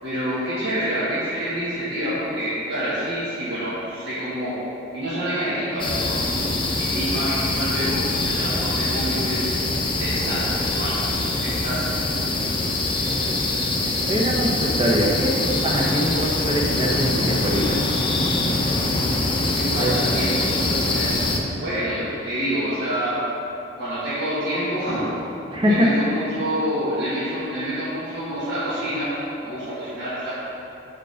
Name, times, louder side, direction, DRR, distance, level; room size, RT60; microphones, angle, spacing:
voice 1, 0.0-4.6 4.9-6.1 6.8-11.0 11.3-11.9 15.8-15.9 19.5-21.2 21.6-23.3 23.8-25.1 25.6-29.1 29.4-30.3, equal, 60° right, -11 dB, 1.6 m, -27 dB
sound 1, 5.8-21.4, left 2 dB, 25° left, 0.7 m, -24 dB
voice 2, 13.0-13.4 13.8-17.9 19.8-19.9 25.5-25.9, equal, 25° right, -3 dB, 0.9 m, -23 dB
5.4 x 5.1 x 6.4 m, 2.8 s
head